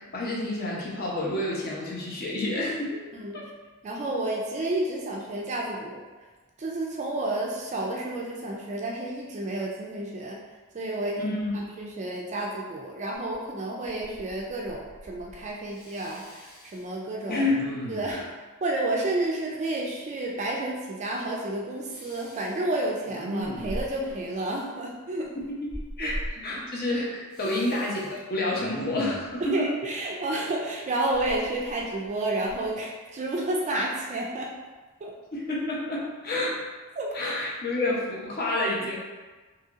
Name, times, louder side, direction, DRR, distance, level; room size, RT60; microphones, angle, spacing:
voice 1, 0.0-3.0 3.3-3.5 11.2-11.7 17.3-17.7 18.1-18.2 25.5-26.2 26.4-29.7 35.3-36.6 37.1-39.0, left 2 dB, 45° left, -4 dB, 0.7 m, -29 dB
voice 2, 3.8-6.0 6.6-10.4 10.7-17.4 17.9-18.2 18.6-25.3 26.0-26.6 27.4-27.5 29.4-34.5 35.0-35.1 37.0-37.3, right 2 dB, 30° right, -2 dB, 0.3 m, -31 dB
Respiratory sounds, 13.3-13.4 13.8-14.4 14.6-15.4 15.8-16.8 17.4-18.3 21.9-22.5 23.1-24.1 25.7-26.3 27.3-28.0 28.6-29.3 31.1-32.1 32.5-32.7, equal, 85° left, 1.0 m, -38 dB
2.9 x 2.7 x 2.4 m, 1.3 s
head